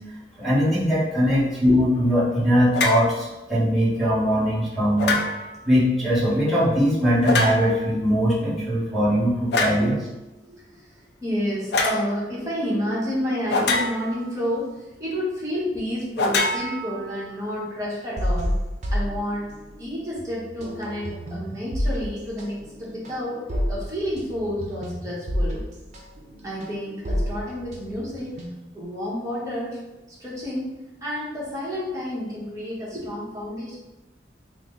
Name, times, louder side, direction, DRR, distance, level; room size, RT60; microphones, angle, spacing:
voice 1, 0.4-5.2 5.6-10.0, equal, ahead, -9 dB, 1.2 m, -21 dB
sound 1, 2.7-3.1 5.0-5.6 7.2-7.9 9.5-9.9 11.7-12.0 13.5-14.3 16.2-17.3, left 2 dB, 60° left, 0.4 m, -24 dB
voice 2, 10.4-10.9 11.2-18.5 18.9-19.5 19.8-25.6 26.4-28.3 28.7-29.8 30.2-30.7 31.0-33.8, equal, 20° right, -6 dB, 1.0 m, -30 dB
sound 2, 18.2-19.9 20.2-28.8, equal, 40° right, 0.6 m, -29 dB
4.3 x 2.0 x 3.7 m, 1.0 s
head